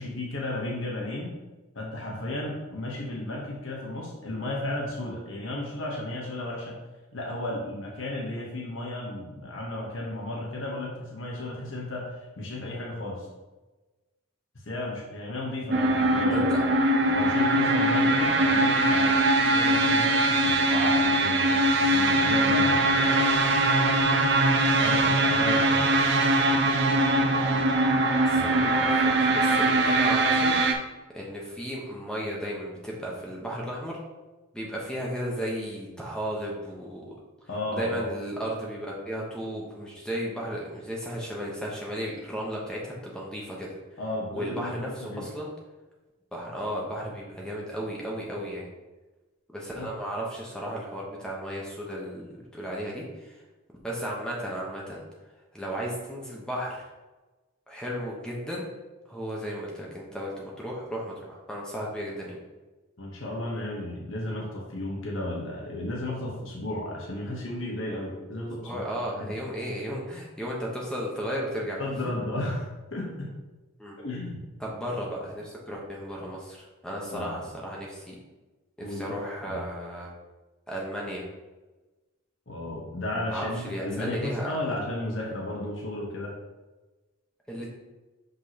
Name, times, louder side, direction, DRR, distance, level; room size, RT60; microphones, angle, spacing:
voice 1, 0.0-1.3 1.7-6.8 7.1-13.3 14.6-16.7 17.1-19.2 19.5-23.0 24.7-25.9 28.3-28.9 37.5-38.1 44.0-45.3 49.8-49.9 63.0-68.8 69.2-69.4 71.8-73.4 74.0-74.4 77.1-77.4 78.8-79.2 79.5-79.6 82.5-86.3, left 1 dB, 65° left, -2 dB, 1.2 m, -34 dB
sound 1, 15.7-30.7, right 2 dB, 50° right, 0.6 m, -22 dB
voice 2, 28.3-30.5 31.1-34.0 34.5-37.1 37.7-43.7 44.3-45.5 46.3-48.7 49.5-53.4 53.8-55.0 55.5-56.8 57.7-58.7 59.1-62.4 68.6-71.9 73.8-73.9 74.6-78.1 78.9-80.1 80.7-81.2 83.3-84.5 87.5-87.8, equal, 5° left, -3 dB, 1.1 m, -34 dB
6.1 x 5.3 x 3.0 m, 1.2 s
head